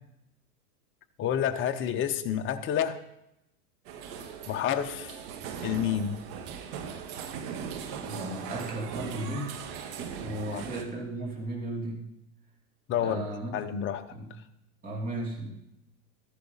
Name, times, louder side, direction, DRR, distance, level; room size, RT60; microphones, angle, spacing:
voice 1, 1.2-3.0 4.5-5.1 5.6-6.2 10.5-10.6 12.9-13.3 13.5-14.0, left 9 dB, 25° left, 7 dB, 0.9 m, -29 dB
sound 1, 3.9-10.8, right 7 dB, 50° right, 1.6 m, -39 dB
voice 2, 8.0-9.5 10.2-12.1 13.0-13.6 14.1-14.4 14.8-15.5, right 1 dB, 20° right, -2 dB, 3.0 m, -35 dB
13.5 x 11.5 x 4.0 m, 0.83 s
hypercardioid pair, 130°, 47 cm